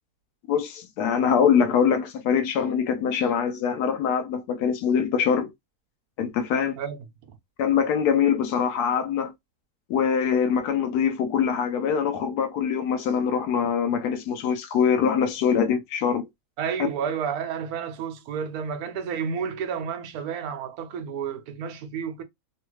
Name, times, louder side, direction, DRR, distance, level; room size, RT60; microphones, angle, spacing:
voice 1, 0.5-5.5 6.2-6.8 7.6-9.3 9.9-16.3 16.8-16.9, left 7 dB, 90° left, 1.2 m, -23 dB
voice 2, 6.8-7.4 16.6-22.2, right 7 dB, 75° right, 1.1 m, -31 dB
3.1 x 2.3 x 3.0 m
omnidirectional pair, 1.6 m